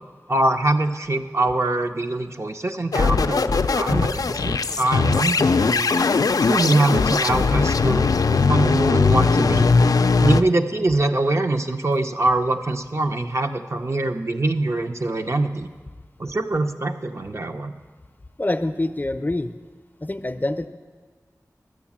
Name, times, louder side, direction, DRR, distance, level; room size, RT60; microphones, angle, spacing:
voice 1, 0.3-6.1 6.4-9.7 10.2-15.7 16.2-17.7, right 2 dB, 50° right, 5 dB, 0.7 m, -23 dB
sound 1, 2.9-10.4, left 4 dB, 85° left, 0.3 m, -19 dB
voice 2, 18.4-19.5 20.0-20.7, left 2 dB, 30° left, 10 dB, 0.5 m, -25 dB
12.0 x 7.2 x 7.3 m, 1.5 s
wide cardioid pair, 70°, 6 cm